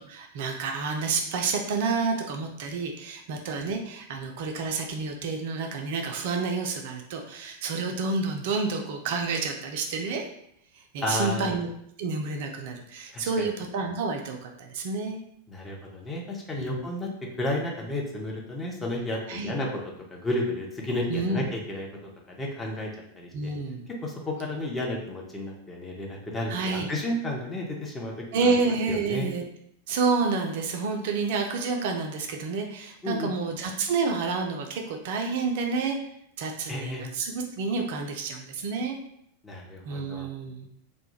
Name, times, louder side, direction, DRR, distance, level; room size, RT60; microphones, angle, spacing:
voice 1, 0.0-10.2 10.9-11.7 12.0-15.2 16.5-16.8 19.3-19.5 21.1-21.5 23.3-23.9 26.5-26.9 28.3-29.4 29.9-36.0 36.4-39.0 39.9-40.7, right 4 dB, 50° right, 3 dB, 0.3 m, -29 dB
voice 2, 11.0-11.5 13.1-13.5 15.5-17.1 17.4-19.7 20.1-22.9 23.1-23.5 24.0-28.5 28.9-29.3 33.0-33.3 36.7-37.0 39.4-40.3, left 1 dB, 15° left, -1 dB, 0.6 m, -32 dB
2.2 x 2.1 x 3.1 m, 0.73 s
figure-of-eight pair, 90°, 0 cm